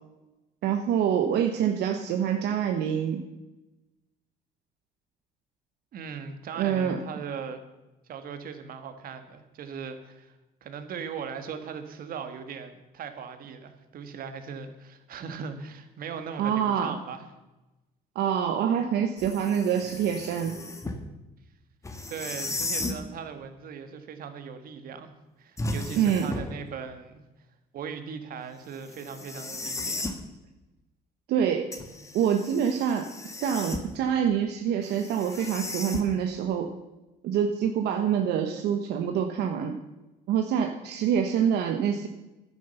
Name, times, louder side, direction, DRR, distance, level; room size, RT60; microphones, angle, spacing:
voice 1, 0.6-3.2 6.6-7.0 16.4-17.0 18.1-20.6 26.0-26.3 31.3-31.7 32.1-36.7 37.2-39.8 40.3-42.1, right 8 dB, 75° right, 5 dB, 1.0 m, -26 dB
voice 2, 5.9-7.6 8.1-10.3 10.6-17.3 22.1-25.1 25.4-27.2 27.7-30.2, right 6 dB, 60° right, 8 dB, 1.7 m, -39 dB
sound 1, 19.2-21.0 21.8-23.0 25.6-26.6 28.9-30.2 31.7-34.0 34.8-36.4, left 2 dB, 15° left, 1.5 m, -35 dB
10.5 x 10.0 x 6.9 m, 1.0 s
cardioid pair, 110°, 17 cm